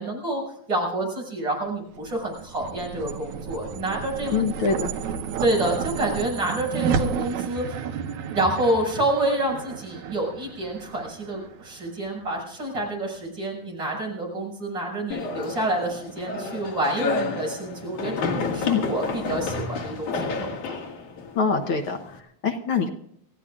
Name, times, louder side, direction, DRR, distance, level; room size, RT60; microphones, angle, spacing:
voice 1, 0.0-4.5 5.4-7.8 8.3-20.8, right 1 dB, 35° right, -3 dB, 7.3 m, -28 dB
sound 1, 1.9-12.4, right 6 dB, 75° right, 2.3 m, -32 dB
voice 2, 4.3-4.9 18.6-18.8 21.3-22.9, left 5 dB, 60° left, 4 dB, 1.4 m, -24 dB
sound 2, 15.1-22.2, left 4 dB, 85° left, 3.5 m, -30 dB
29.0 x 15.0 x 2.5 m, 0.71 s
omnidirectional pair, 3.4 m